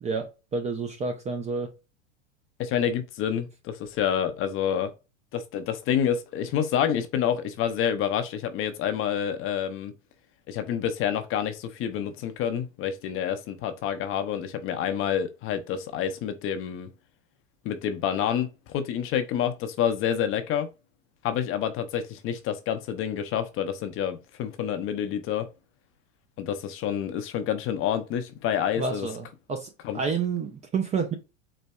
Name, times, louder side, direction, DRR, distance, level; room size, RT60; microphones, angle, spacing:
voice 1, 0.0-1.7 28.8-31.1, right 5 dB, 20° right, 0.4 m, -30 dB
voice 2, 2.6-4.9 5.3-9.9 10.5-16.9 17.6-20.7 21.2-25.5 26.4-29.1 29.8-30.0, left 9 dB, 35° left, 0.5 m, -28 dB
4.3 x 2.6 x 2.2 m
hypercardioid pair, 95°, 38 cm